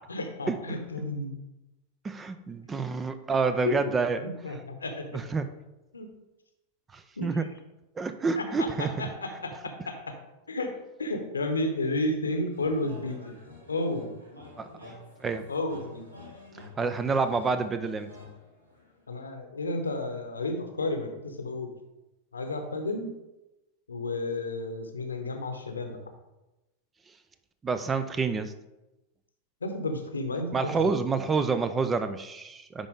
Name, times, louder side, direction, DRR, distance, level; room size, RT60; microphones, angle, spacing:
voice 1, 0.1-1.4 3.7-3.8 4.2-5.0 5.9-6.1 7.2-7.3 8.4-10.1 10.5-10.7 11.0-13.3 13.7-14.1 15.5-16.0 19.1-21.7 22.3-23.1 23.9-26.0 29.6-31.0, left 2 dB, 75° left, 5 dB, 0.9 m, -32 dB
voice 2, 2.0-4.3 5.1-5.5 6.9-7.5 8.0-8.9 14.6-14.7 15.2-15.5 16.6-18.1 27.6-28.5 30.5-32.9, right 4 dB, 20° right, 11 dB, 0.5 m, -28 dB
sound 1, 12.5-19.1, left 2 dB, 85° right, 1.5 m, -49 dB
10.0 x 4.3 x 3.6 m, 0.99 s
figure-of-eight pair, 90°, 0 cm